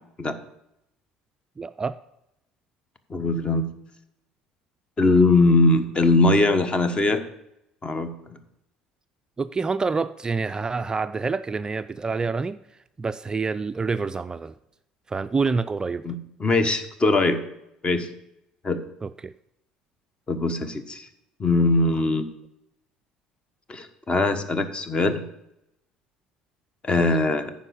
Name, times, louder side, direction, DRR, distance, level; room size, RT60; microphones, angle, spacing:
voice 1, 1.6-2.0 9.4-12.6 13.0-14.5 15.1-16.0 19.0-19.3 27.0-27.1, right 4 dB, 20° right, 13 dB, 0.3 m, -27 dB
voice 2, 3.1-3.7 5.0-7.2 7.8-8.1 16.0-17.4 17.8-18.1 18.6-18.8 20.3-21.1 21.4-22.3 23.7-25.2 26.8-27.5, left 2 dB, 30° left, 10 dB, 1.1 m, -21 dB
9.7 x 5.2 x 7.1 m, 0.83 s
hypercardioid pair, 60°, 3 cm